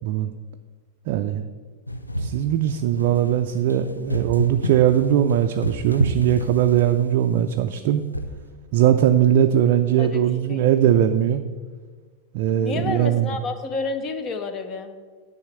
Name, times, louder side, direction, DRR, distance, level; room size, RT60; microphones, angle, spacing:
voice 1, 0.0-0.3 1.1-1.4 2.2-8.0 8.7-11.4 12.3-13.3, right 10 dB, 50° right, 5 dB, 0.4 m, -20 dB
sound 1, 1.9-7.2 8.1-8.5, equal, 85° left, 0.6 m, -29 dB
voice 2, 12.6-14.9, left 4 dB, 30° left, 8 dB, 1.0 m, -29 dB
10.0 x 4.2 x 7.5 m, 1.5 s
figure-of-eight pair, 90°, 0 cm